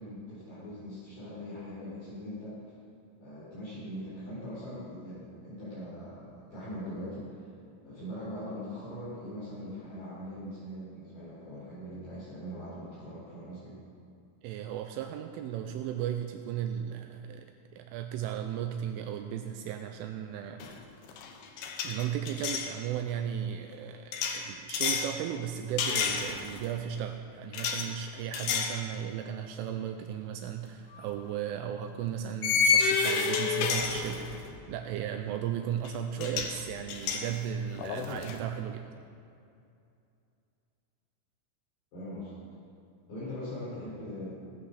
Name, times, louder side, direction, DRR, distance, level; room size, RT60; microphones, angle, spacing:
voice 1, 0.0-2.6 3.2-7.3 7.8-13.7 41.9-42.3 43.1-44.3, equal, 45° left, -10 dB, 5.1 m, -41 dB
voice 2, 14.4-17.5 17.7-20.8 21.8-34.2 34.7-38.8, right 9 dB, 85° right, 6 dB, 3.0 m, -35 dB
sound 1, 20.6-20.8 21.1-22.7 24.1-25.1 25.8-26.7 27.5-27.9 28.3-28.8 29.2-29.4 30.9-31.1 32.4-34.5 35.8-35.9 36.2-36.6 36.9-38.4, left 5 dB, 80° left, 2.3 m, -30 dB
18.5 x 8.5 x 6.5 m, 2.5 s
omnidirectional pair, 5.9 m